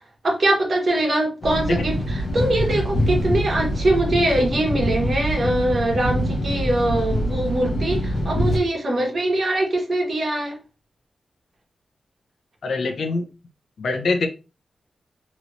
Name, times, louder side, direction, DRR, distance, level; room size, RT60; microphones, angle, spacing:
voice 1, 0.2-10.6, right 1 dB, 50° right, 1.1 m, -22 dB
sound 1, 1.4-8.6, equal, 60° left, 0.9 m, -24 dB
voice 2, 12.6-13.2 13.8-14.3, left 3 dB, 75° left, 0.6 m, -23 dB
3.0 x 3.0 x 2.6 m
wide cardioid pair, 125°, 0 cm